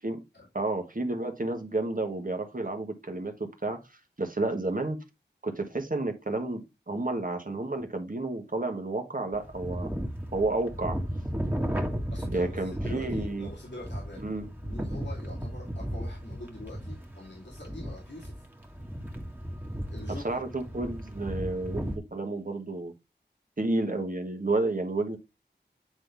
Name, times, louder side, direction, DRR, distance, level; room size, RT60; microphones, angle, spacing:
voice 1, 0.5-3.8 4.2-5.0 5.4-9.9 10.3-11.0 12.3-13.5 14.2-14.4 20.2-22.9 23.6-25.2, right 2 dB, 50° right, 1.4 m, -31 dB
sound 1, 9.3-22.0, equal, 10° right, 1.6 m, -35 dB
voice 2, 12.1-14.2 14.6-18.3 19.9-20.4, left 1 dB, 85° left, 2.6 m, -44 dB
8.8 x 3.9 x 3.4 m
wide cardioid pair, 45°, 18 cm